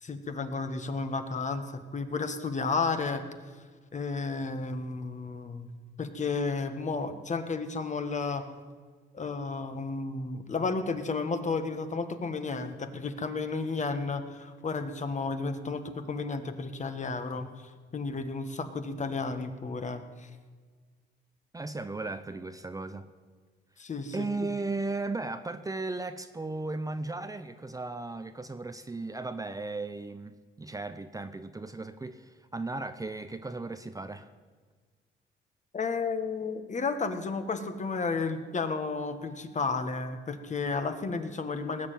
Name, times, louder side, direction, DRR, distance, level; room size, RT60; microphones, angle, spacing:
voice 1, 0.0-3.2 3.9-5.7 6.0-8.5 9.1-17.5 17.9-20.3 23.8-24.3 35.7-41.9, left 4 dB, 35° left, 8 dB, 1.5 m, -32 dB
voice 2, 21.5-23.1 24.1-34.3, right 3 dB, 15° right, 10 dB, 0.7 m, -36 dB
19.0 x 6.7 x 9.3 m, 1.5 s
cardioid pair, 90°, 20 cm